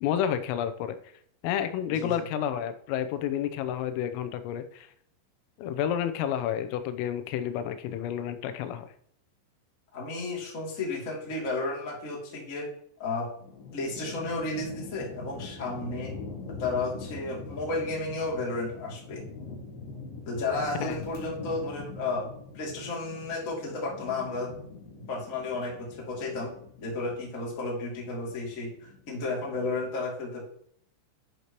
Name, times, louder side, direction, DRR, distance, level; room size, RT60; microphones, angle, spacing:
voice 1, 0.0-1.0 1.4-4.9 5.6-8.9 20.8-21.0, left 9 dB, 85° left, 9 dB, 3.3 m, -30 dB
voice 2, 9.9-12.7 13.0-13.3 13.7-16.1 16.5-19.2 20.2-24.5 25.1-26.5 26.8-30.5, left 3 dB, 30° left, -3 dB, 1.6 m, -33 dB
sound 1, 13.4-29.9, left 3 dB, 65° left, 4.8 m, -43 dB
11.0 x 6.7 x 3.0 m, 0.67 s
omnidirectional pair, 5.9 m